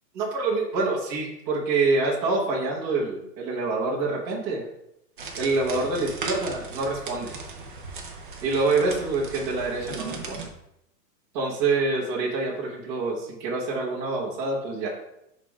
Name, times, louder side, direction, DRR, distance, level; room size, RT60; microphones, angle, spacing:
voice 1, 0.1-4.6 5.4-7.3 8.4-10.5 11.3-14.9, right 3 dB, 15° right, -6 dB, 0.9 m, -26 dB
sound 1, 5.2-10.5, right 3 dB, 35° right, 0.5 m, -37 dB
5.2 x 3.6 x 5.2 m, 0.81 s
supercardioid pair, 175°, 49 cm